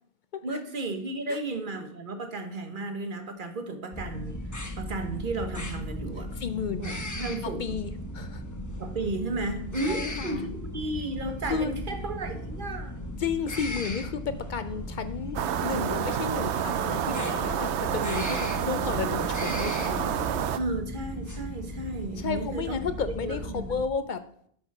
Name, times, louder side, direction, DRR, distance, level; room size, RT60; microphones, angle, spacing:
voice 1, 0.4-4.4 4.8-6.3 6.8-7.8 8.8-12.9 20.5-22.8 23.2-23.8, right 2 dB, 45° right, 6 dB, 1.3 m, -33 dB
sound 1, 3.9-23.8, left 1 dB, 15° left, 0.8 m, -37 dB
voice 2, 6.4-6.9 7.6-8.4 9.8-10.4 11.5-11.7 13.2-20.2 22.2-24.2, left 6 dB, 55° left, 11 dB, 0.5 m, -32 dB
sound 2, 15.4-20.6, right 9 dB, 75° right, 0.9 m, -29 dB
8.1 x 5.1 x 6.0 m, 0.65 s
omnidirectional pair, 1.2 m